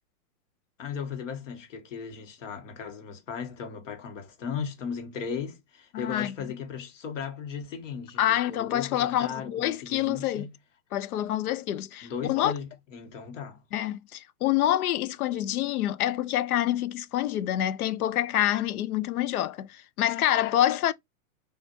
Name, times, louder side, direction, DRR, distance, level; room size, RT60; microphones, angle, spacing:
voice 1, 0.8-10.5 12.0-13.6, left 6 dB, 60° left, 1.5 m, -36 dB
voice 2, 5.9-6.3 8.2-10.5 10.9-12.5 13.7-20.9, left 12 dB, 85° left, 0.6 m, -27 dB
6.0 x 2.6 x 2.6 m
supercardioid pair, 170°, 43 cm